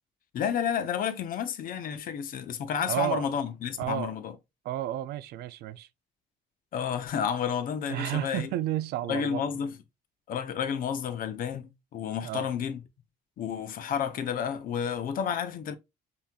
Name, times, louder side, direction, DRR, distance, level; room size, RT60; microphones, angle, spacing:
voice 1, 0.3-4.4 6.7-8.5 9.1-9.8 10.3-12.8 13.4-15.8, left 8 dB, 55° left, 0.7 m, -31 dB
voice 2, 2.9-3.2 3.8-4.1 4.6-5.9 7.9-9.4 12.2-12.5, right 13 dB, 75° right, 0.4 m, -31 dB
5.5 x 2.9 x 2.3 m
cardioid pair, 110°, 17 cm